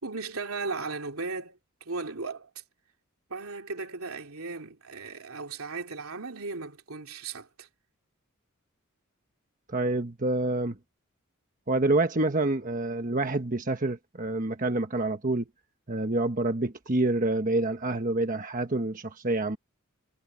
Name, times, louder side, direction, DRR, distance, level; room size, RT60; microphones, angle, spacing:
voice 1, 0.0-2.5 3.3-7.7, right 4 dB, 80° right, 2.9 m, -36 dB
voice 2, 9.7-10.8 11.7-15.5 15.9-19.6, right 2 dB, 40° right, 1.2 m, -27 dB
head